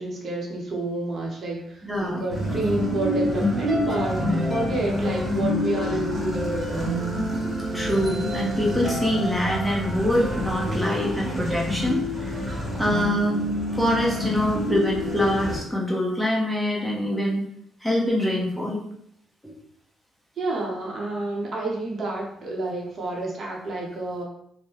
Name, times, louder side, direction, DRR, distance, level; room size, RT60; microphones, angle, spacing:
voice 1, 0.0-7.1 20.4-24.2, right 2 dB, 45° right, -2 dB, 0.8 m, -29 dB
voice 2, 1.8-2.2 7.7-12.4 12.8-13.5 13.8-17.4 17.8-18.8 19.4-19.5, left 1 dB, ahead, -3 dB, 0.8 m, -25 dB
sound 1, 2.3-15.6, left 1 dB, 15° right, 1.1 m, -27 dB
3.5 x 2.1 x 2.9 m, 0.72 s
cardioid pair, 110°, 0 cm